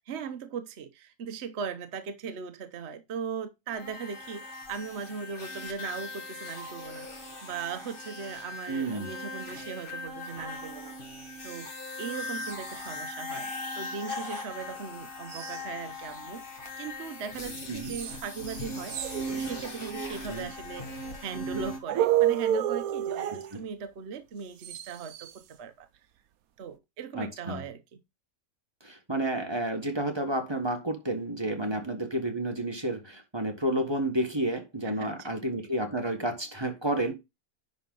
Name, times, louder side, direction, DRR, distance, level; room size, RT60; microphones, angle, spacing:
voice 1, 0.0-11.0 11.4-11.7 12.0-19.0 19.3-25.9 26.6-28.0 31.6-31.8 34.8-35.3, right 6 dB, 50° right, 1.0 m, -39 dB
sound 1, 3.7-21.8, left 1 dB, 35° left, 2.1 m, -39 dB
voice 2, 8.7-9.1 17.7-17.9 20.3-20.5 23.3-23.6 27.1-27.6 28.8-37.1, right 1 dB, 20° right, 1.5 m, -31 dB
sound 2, 15.3-15.6 17.8-18.2 18.5-18.6 18.9-20.1 21.9-23.5 24.6-25.3, right 11 dB, 70° right, 1.1 m, -29 dB
10.5 x 4.4 x 3.9 m
omnidirectional pair, 1.6 m